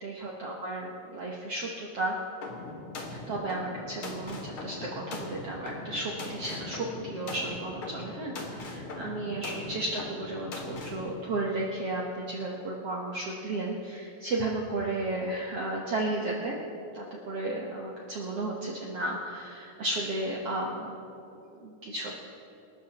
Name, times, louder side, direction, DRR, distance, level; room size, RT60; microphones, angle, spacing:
voice 1, 0.0-2.2 3.3-16.6 16.9-21.0 21.5-22.2, right 2 dB, 70° right, -2 dB, 1.4 m, -33 dB
sound 1, 2.4-11.1, left 2 dB, 50° left, 1.8 m, -40 dB
27.0 x 13.0 x 3.0 m, 2.8 s
omnidirectional pair, 4.4 m